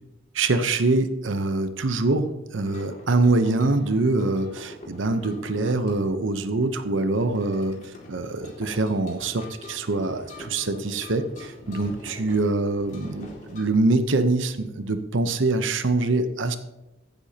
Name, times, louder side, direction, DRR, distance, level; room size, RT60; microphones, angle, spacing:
voice 1, 0.3-16.6, right 2 dB, 70° right, 9 dB, 0.8 m, -24 dB
sound 1, 2.6-13.6, left 1 dB, 40° left, 2.3 m, -44 dB
15.0 x 8.1 x 2.9 m, 0.98 s
head